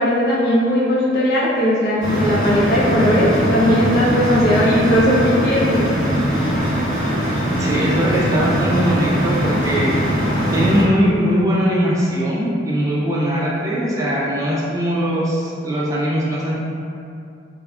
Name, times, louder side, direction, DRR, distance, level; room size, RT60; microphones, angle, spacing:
voice 1, 0.0-5.9, equal, 55° left, -6 dB, 0.6 m, -17 dB
sound 1, 2.0-10.8, equal, 40° right, 0.7 m, -20 dB
voice 2, 7.6-9.9 10.5-16.5, equal, 15° right, -6 dB, 0.3 m, -20 dB
2.3 x 2.1 x 3.5 m, 2.5 s
head